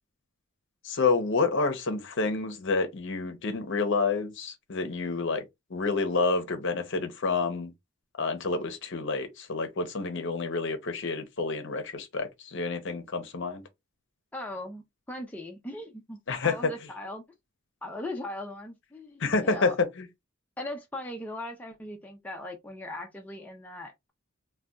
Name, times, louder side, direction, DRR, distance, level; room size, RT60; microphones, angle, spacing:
voice 1, 0.8-5.4 5.7-7.7 8.2-13.6 16.3-16.7 19.2-20.1, left 4 dB, 55° left, 0.6 m, -28 dB
voice 2, 14.3-16.2 16.4-17.2 17.8-19.8 20.6-24.1, left 1 dB, 5° left, 0.4 m, -39 dB
3.9 x 2.2 x 2.2 m
head